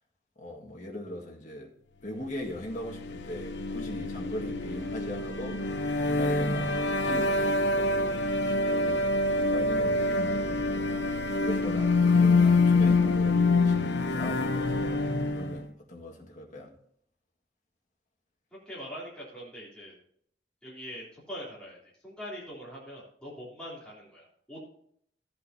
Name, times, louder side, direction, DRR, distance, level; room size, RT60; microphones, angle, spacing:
voice 1, 0.4-1.7 2.0-5.7 6.0-8.0 8.4-10.3 10.7-11.0 11.3-16.7, left 1 dB, 40° left, 1.8 m, -40 dB
sound 1, 2.7-15.6, left 3 dB, 65° left, 0.9 m, -26 dB
voice 2, 18.6-19.9 20.6-24.7, equal, 5° left, 3.2 m, -43 dB
15.0 x 8.2 x 2.8 m
head